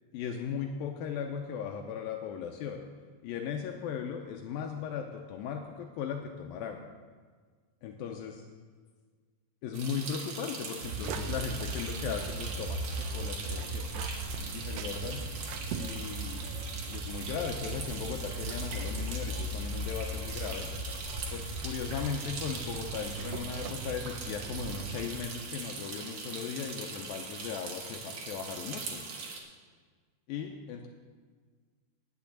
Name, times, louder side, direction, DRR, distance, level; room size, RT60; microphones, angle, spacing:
voice 1, 0.1-2.8 3.2-6.9 7.8-8.4 9.6-14.1 14.5-15.2 15.7-16.4 16.9-20.7 21.3-29.0 30.3-30.9, left 7 dB, 90° left, 3 dB, 2.1 m, -37 dB
sound 1, 9.7-29.4, right 4 dB, 60° right, 2.5 m, -41 dB
sound 2, 10.8-25.2, right 2 dB, 80° right, 2.0 m, -38 dB
10.5 x 6.9 x 8.5 m, 1.5 s
omnidirectional pair, 4.9 m